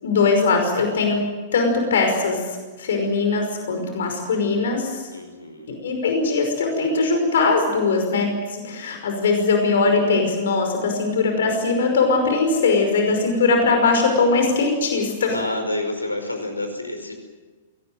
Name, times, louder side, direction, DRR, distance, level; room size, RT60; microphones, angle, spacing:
voice 1, 0.0-1.2 1.5-5.1 5.8-15.4, left 4 dB, 65° left, 4 dB, 5.4 m, -20 dB
voice 2, 5.1-5.8 15.3-17.1, left 1 dB, 85° left, 7 dB, 5.0 m, -29 dB
22.5 x 19.0 x 9.1 m, 1.3 s
figure-of-eight pair, 105°, 0 cm